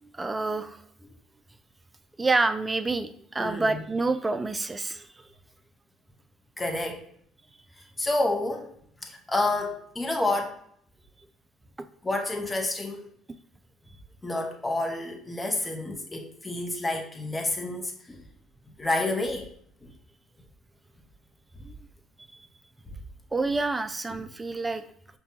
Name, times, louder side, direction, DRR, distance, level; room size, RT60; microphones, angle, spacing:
voice 1, 0.0-0.8 2.2-5.1 21.6-21.9 22.2-22.3 23.3-24.9, right 3 dB, 20° right, 0.4 m, -28 dB
voice 2, 3.4-3.8 6.6-7.0 8.0-8.7 9.0-10.6 12.0-13.1 14.2-18.2 18.8-19.5 19.8-19.9, left 2 dB, 20° left, 0.8 m, -29 dB
5.2 x 2.2 x 2.8 m
supercardioid pair, 75°, 0 cm